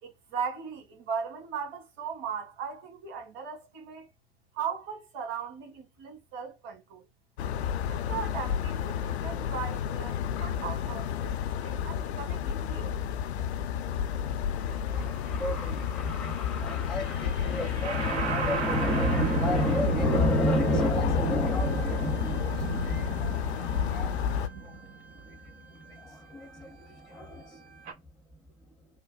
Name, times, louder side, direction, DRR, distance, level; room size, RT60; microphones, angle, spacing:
voice 1, 0.0-4.1 4.5-7.0 7.9-11.3 11.6-12.9, right 6 dB, 55° right, 1.8 m, -38 dB
sound 1, 7.4-24.5, left 9 dB, 80° left, 0.5 m, -31 dB
voice 2, 14.5-24.7 26.0-26.7 27.1-27.4, equal, ahead, 0.5 m, -31 dB
sound 2, 16.9-27.9, right 6 dB, 90° right, 0.7 m, -35 dB
3.3 x 2.1 x 2.5 m
hypercardioid pair, 90°, 32 cm